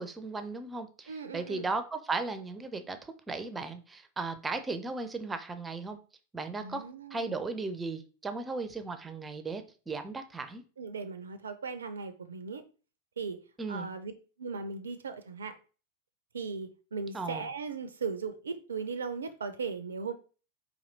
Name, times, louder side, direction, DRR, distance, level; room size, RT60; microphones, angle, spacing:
voice 1, 0.0-6.0 6.3-6.8 7.1-10.7 13.6-13.9 17.1-17.5, right 3 dB, 15° right, 9 dB, 0.5 m, -36 dB
voice 2, 1.1-1.7 6.6-7.4 10.8-12.6 13.2-13.4 13.7-14.1 14.4-15.5 16.3-20.1, right 5 dB, 70° right, 10 dB, 0.4 m, -37 dB
4.3 x 2.9 x 3.9 m, 0.37 s
figure-of-eight pair, 90°, 0 cm